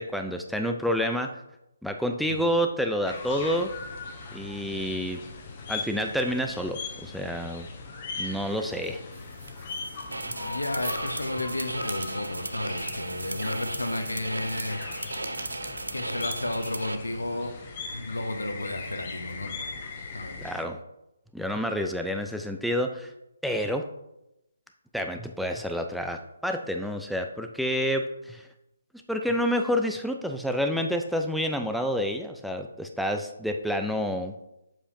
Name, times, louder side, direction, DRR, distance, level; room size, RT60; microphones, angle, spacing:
voice 1, 0.0-1.4 1.8-3.7 4.3-5.2 5.7-7.7 8.2-9.0 20.4-20.8 21.3-23.1 23.4-23.9 24.9-28.5 29.1-34.3, equal, ahead, 4 dB, 0.3 m, -28 dB
sound 1, 3.1-20.6, left 4 dB, 35° left, 0.9 m, -39 dB
sound 2, 8.4-17.6, right 3 dB, 70° right, 0.8 m, -46 dB
sound 3, 10.1-16.9, right 2 dB, 85° right, 0.4 m, -35 dB
voice 2, 10.4-14.8 15.9-19.8 20.1-20.5, left 2 dB, 85° left, 6 dB, 0.8 m, -33 dB
7.4 x 4.9 x 2.6 m, 0.88 s
figure-of-eight pair, 145°, 0 cm